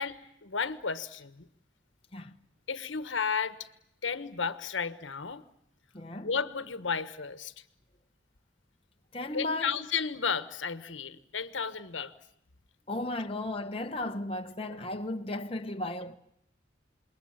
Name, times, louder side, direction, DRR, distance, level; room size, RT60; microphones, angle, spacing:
voice 1, 0.0-1.5 2.7-3.7 4.0-5.4 6.2-7.6 9.3-12.1, left 6 dB, 85° left, 1.3 m, -33 dB
voice 2, 5.9-6.3 9.1-9.8 12.9-16.2, left 1 dB, 30° left, 1.1 m, -35 dB
27.5 x 22.0 x 8.8 m
head